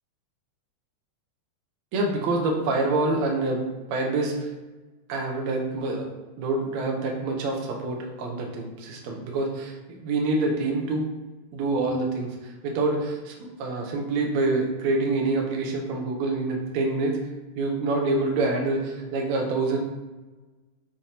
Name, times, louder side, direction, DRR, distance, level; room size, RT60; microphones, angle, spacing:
voice 1, 1.9-3.6 3.9-4.5 5.1-6.1 6.4-9.7 10.0-11.1 11.5-12.3 12.6-17.2 17.6-19.8, right 2 dB, 65° right, 1 dB, 2.1 m, -26 dB
7.5 x 3.5 x 4.2 m, 1.2 s
omnidirectional pair, 3.6 m